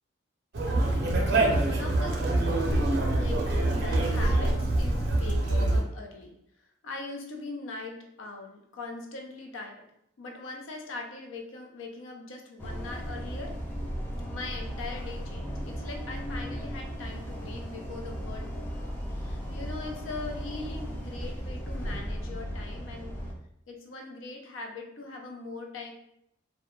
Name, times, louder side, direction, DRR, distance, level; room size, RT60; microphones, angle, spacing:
Conversation, 0.5-5.8, right 2 dB, 55° right, 0.4 m, -25 dB
voice 1, 0.7-1.1 1.3-2.5 3.1-6.4 6.8-9.9 10.2-13.6 14.3-23.2 23.7-25.9, left 3 dB, 80° left, 2 dB, 0.5 m, -41 dB
sound 1, 12.6-23.3, equal, 10° left, 0.3 m, -36 dB
2.2 x 2.1 x 2.9 m, 0.74 s
head